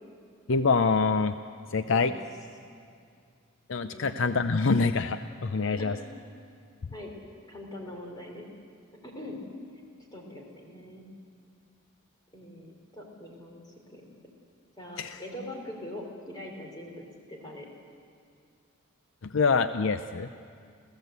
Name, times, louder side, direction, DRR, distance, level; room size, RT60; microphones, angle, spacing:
voice 1, 0.5-1.4 1.7-2.1 3.7-6.0 15.0-15.2 19.2-20.3, left 4 dB, 60° left, 10 dB, 0.5 m, -25 dB
voice 2, 5.5-6.1 6.9-7.1 7.4-8.5 9.0-9.4 10.1-11.1 12.3-14.0 14.8-17.7, left 1 dB, 20° left, 1 dB, 3.9 m, -42 dB
29.0 x 15.5 x 8.2 m, 2.3 s
head